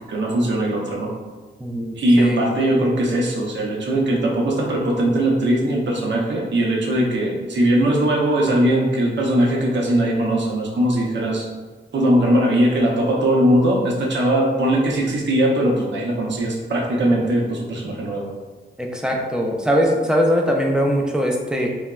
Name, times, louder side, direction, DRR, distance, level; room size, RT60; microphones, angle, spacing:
voice 1, 0.1-1.1 2.0-11.5 11.9-18.3, right 1 dB, 75° right, -2 dB, 0.6 m, -20 dB
voice 2, 1.6-2.4 18.8-21.7, equal, 5° right, 0 dB, 0.4 m, -21 dB
3.2 x 2.0 x 2.2 m, 1.3 s
wide cardioid pair, 85°, 19 cm